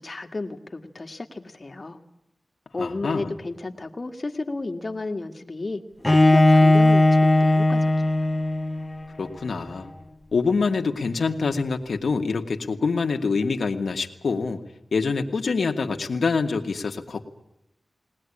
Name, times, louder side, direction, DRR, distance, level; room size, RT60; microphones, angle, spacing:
voice 1, 0.0-2.0 2.7-8.1, left 2 dB, 35° left, 5 dB, 1.8 m, -32 dB
voice 2, 2.8-3.3 9.2-9.9 10.3-14.6 14.9-17.2, left 4 dB, 80° left, 4 dB, 1.6 m, -25 dB
Bowed string instrument, 6.0-9.0, left 1 dB, 15° left, 1.0 m, -18 dB
20.5 x 19.0 x 9.9 m, 0.85 s
wide cardioid pair, 105°, 0 cm